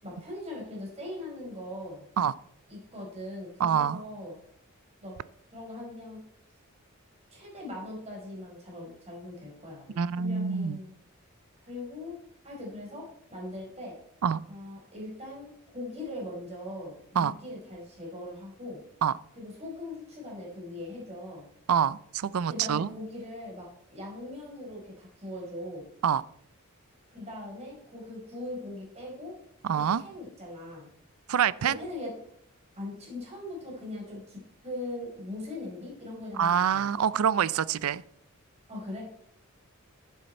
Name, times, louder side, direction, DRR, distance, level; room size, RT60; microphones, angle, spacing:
voice 1, 0.0-2.1 2.7-4.4 5.0-5.1 5.5-6.2 7.3-10.9 11.6-12.2 12.4-14.0 14.5-18.8 19.4-21.5 22.5-25.8 27.1-29.4 29.9-30.9 31.8-32.1 32.8-36.9 38.7-39.1, left 1 dB, 30° right, -2 dB, 4.3 m, -40 dB
voice 2, 3.6-4.0 10.0-10.8 14.2-14.4 17.2-17.3 19.0-19.1 21.7-22.9 26.0-26.2 29.6-30.0 31.3-31.8 36.4-38.0, right 8 dB, 75° right, 19 dB, 0.4 m, -26 dB
11.0 x 9.8 x 4.3 m, 0.69 s
head